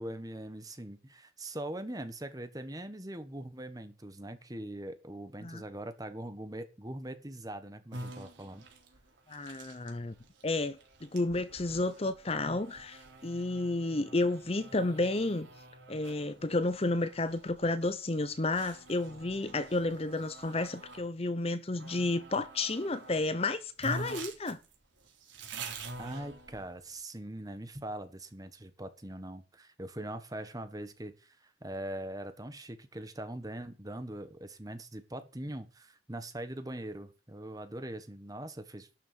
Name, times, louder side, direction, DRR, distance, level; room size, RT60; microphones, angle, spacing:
voice 1, 0.0-8.6 26.0-38.9, right 1 dB, 20° right, 1.4 m, -42 dB
sound 1, 7.9-21.1 21.7-23.2 23.5-23.6 23.8-26.9, right 2 dB, 90° right, 3.8 m, -47 dB
voice 2, 9.3-10.1 10.4-15.5 15.9-24.6, left 2 dB, 35° left, 0.8 m, -31 dB
12.0 x 6.8 x 7.7 m
head